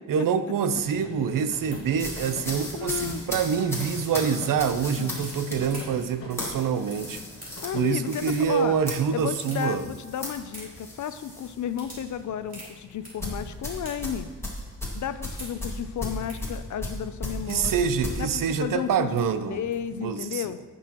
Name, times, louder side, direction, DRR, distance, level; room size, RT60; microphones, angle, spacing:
voice 1, 0.1-7.2 7.7-9.8 17.5-19.6 19.9-20.4, right 7 dB, 75° right, 11 dB, 0.6 m, -26 dB
sound 1, 0.7-20.0, left 3 dB, 40° left, 1.3 m, -48 dB
sound 2, 0.7-20.1, right 1 dB, 25° right, 3.3 m, -49 dB
sound 3, 1.9-11.5 11.9-12.1 13.2-18.2, left 1 dB, 10° left, 1.8 m, -36 dB
voice 2, 2.7-3.2 4.9-5.3 7.6-8.8 9.1-14.3 14.9-17.8 18.2-19.2 19.5-20.6, left 9 dB, 65° left, 12 dB, 0.5 m, -33 dB
17.0 x 6.2 x 2.9 m, 1.3 s
wide cardioid pair, 155°, 33 cm